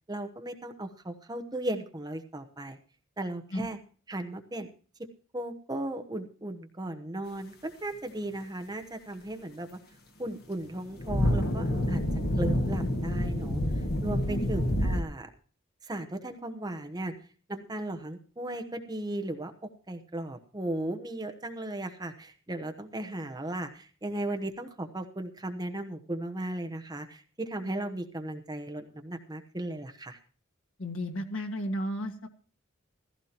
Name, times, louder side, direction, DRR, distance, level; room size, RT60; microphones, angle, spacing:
voice 1, 0.1-2.8 3.2-3.8 4.1-4.7 5.3-9.8 10.2-12.0 12.4-15.3 15.8-17.1 17.5-19.5 19.9-30.2, right 1 dB, 20° right, 6 dB, 0.9 m, -36 dB
sound 1, 10.6-15.0, left 1 dB, 50° left, 1.7 m, -28 dB
voice 2, 30.8-32.3, equal, 80° left, 3 dB, 1.7 m, -33 dB
15.5 x 15.0 x 2.9 m, 0.40 s
head